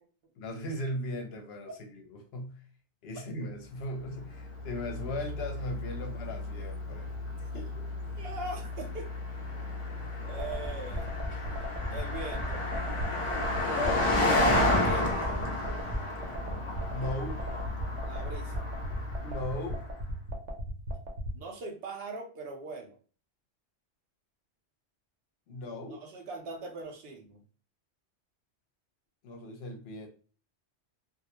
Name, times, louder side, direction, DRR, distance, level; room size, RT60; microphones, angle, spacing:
voice 1, 0.4-2.6 3.0-7.7 13.8-14.1 16.9-17.4 19.2-19.8 25.5-26.0 29.2-30.1, left 1 dB, 70° left, 3 dB, 0.8 m, -37 dB
Car passing by, 4.2-19.9, left 1 dB, 50° left, 0.3 m, -32 dB
voice 2, 8.2-9.1 10.2-11.1 11.9-12.6 14.6-15.3 18.1-18.6 21.3-22.9 25.9-27.4, right 3 dB, 65° right, 3 dB, 0.7 m, -41 dB
sound 1, 10.4-21.3, equal, 85° right, 1.0 m, -35 dB
2.4 x 2.1 x 2.8 m, 0.39 s
omnidirectional pair, 1.2 m